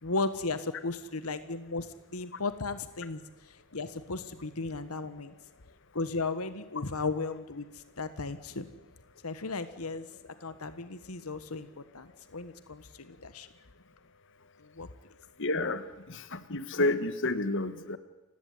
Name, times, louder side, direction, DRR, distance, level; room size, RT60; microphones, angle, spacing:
voice 1, 0.0-5.3 5.9-8.7 9.2-10.1 10.4-13.5 14.6-14.9, left 3 dB, 90° left, 12 dB, 1.5 m, -35 dB
voice 2, 15.4-18.0, left 2 dB, 60° left, 12 dB, 1.6 m, -30 dB
29.5 x 16.5 x 9.6 m, 1.1 s
head